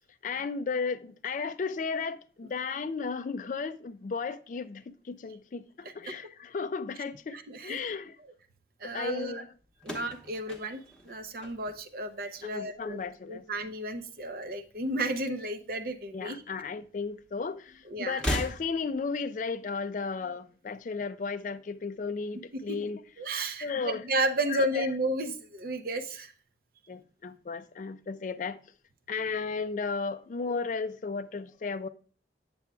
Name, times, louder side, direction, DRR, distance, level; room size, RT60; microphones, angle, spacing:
voice 1, 0.2-8.2 8.8-9.5 9.9-10.0 12.4-13.4 16.1-23.0 23.6-24.0 24.4-24.9 26.9-28.6 29.1-31.9, left 5 dB, 45° left, 0.3 m, -34 dB
voice 2, 7.3-7.8 8.8-9.4 9.8-13.0 13.3-16.4 17.9-18.2 22.7-22.8 23.2-26.3, right 1 dB, 50° right, 0.6 m, -33 dB
sound 1, 9.8-12.1 12.4-13.0 14.1-15.1 15.3-15.5 16.6-16.7 18.1-19.1, equal, 5° left, 1.0 m, -37 dB
8.6 x 6.9 x 2.3 m
head